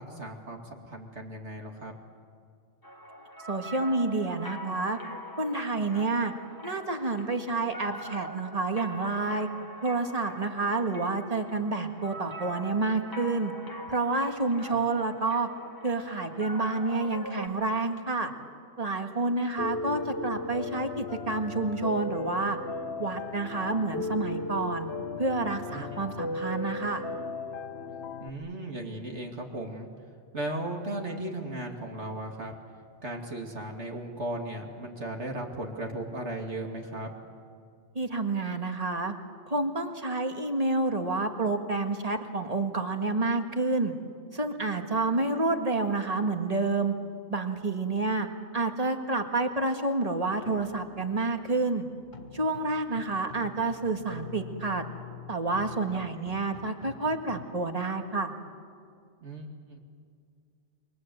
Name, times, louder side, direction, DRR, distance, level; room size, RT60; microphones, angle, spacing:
voice 1, 0.0-1.9 14.7-14.8 25.7-26.3 28.2-29.9 30.3-32.5 33.0-37.1 55.9-56.1 59.2-59.8, right 1 dB, 60° right, 1 dB, 2.7 m, -36 dB
sound 1, 2.8-17.5, equal, 15° left, 1.5 m, -43 dB
voice 2, 3.5-5.0 5.4-6.3 6.6-9.5 9.8-13.5 13.9-15.5 15.8-18.3 18.8-22.6 23.0-24.9 25.2-27.0 38.0-39.1 39.5-43.9 44.3-46.9 47.3-48.3 48.5-51.9 52.3-54.8 55.3-58.3, right 3 dB, 30° right, 5 dB, 1.9 m, -29 dB
Piano, 19.6-28.3, left 3 dB, 55° left, 1.3 m, -35 dB
sound 2, 50.4-57.4, left 6 dB, 35° left, 1.4 m, -46 dB
28.0 x 23.5 x 7.9 m, 2.3 s
omnidirectional pair, 1.3 m